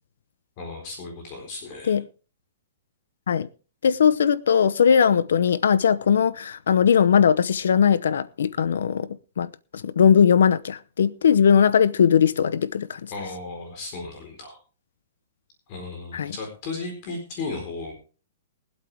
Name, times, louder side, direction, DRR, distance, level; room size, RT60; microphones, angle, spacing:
voice 1, 0.6-2.0 13.1-14.6 15.7-17.9, left 3 dB, 30° left, 4.3 m, -35 dB
voice 2, 3.8-9.1 9.4-13.1 16.1-16.3, left 7 dB, 90° left, 0.8 m, -19 dB
22.5 x 8.3 x 3.5 m
hypercardioid pair, 170°, 0 cm